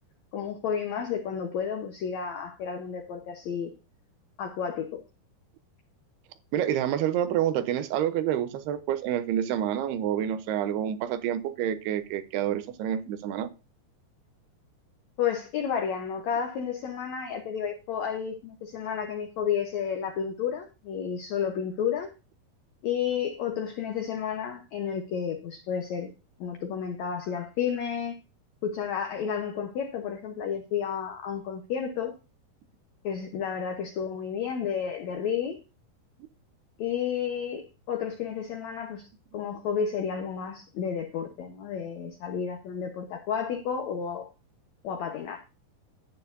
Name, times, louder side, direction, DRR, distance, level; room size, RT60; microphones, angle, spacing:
voice 1, 0.3-3.7 4.4-5.0 15.2-22.1 22.8-26.1 26.4-28.2 28.6-32.1 33.0-35.6 36.8-39.1 39.3-44.3 44.8-45.4, left 7 dB, 70° left, 1.8 m, -31 dB
voice 2, 6.5-13.5, right 10 dB, 90° right, 2.9 m, -28 dB
11.0 x 9.5 x 2.7 m
omnidirectional pair, 4.5 m